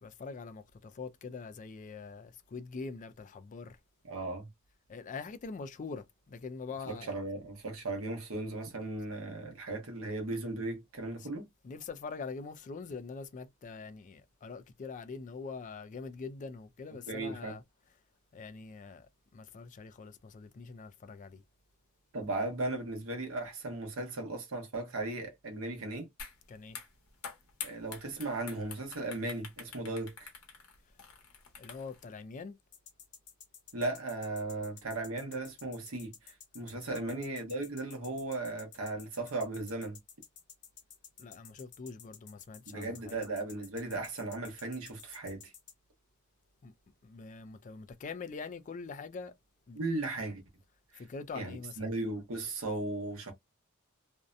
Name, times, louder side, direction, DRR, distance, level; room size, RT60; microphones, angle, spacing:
voice 1, 0.0-3.8 4.9-7.2 11.2-11.3 11.6-17.6 18.3-21.4 26.5-26.8 31.6-32.6 36.9-37.2 41.2-43.2 46.6-46.7 47.0-49.3 49.7-49.8 51.0-51.8, left 4 dB, 35° left, 0.3 m, -44 dB
voice 2, 4.0-4.5 6.9-11.5 17.1-17.5 22.1-26.1 27.6-30.3 33.7-40.0 42.7-45.5 49.8-50.4 50.9-51.0 51.3-53.3, right 2 dB, 70° right, 0.8 m, -37 dB
sound 1, 26.2-26.4 26.7-32.0, left 6 dB, 85° left, 0.9 m, -46 dB
sound 2, 32.7-45.7, left 8 dB, 55° left, 0.8 m, -52 dB
2.6 x 2.1 x 2.4 m
head